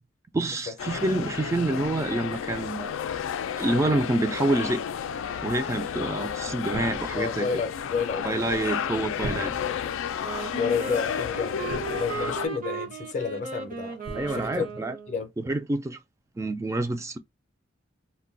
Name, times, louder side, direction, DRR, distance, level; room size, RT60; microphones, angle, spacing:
voice 1, 0.3-3.2 3.6-4.8 5.4-7.5 8.2-9.5 14.1-15.0 15.4-16.0 16.4-17.2, right 2 dB, 15° right, 0.3 m, -27 dB
sound 1, 0.8-12.5, left 8 dB, 90° left, 0.3 m, -32 dB
sound 2, 6.7-7.6 9.2-10.0 11.7-12.4 14.0-14.7, right 2 dB, 80° right, 0.6 m, -39 dB
voice 2, 7.1-8.4 10.6-14.0 14.3-14.6 15.1-15.3, left 5 dB, 40° left, 0.5 m, -31 dB
Wind instrument woodwind instrument, 10.2-15.2, right 4 dB, 45° right, 0.7 m, -36 dB
2.2 x 2.2 x 3.7 m
head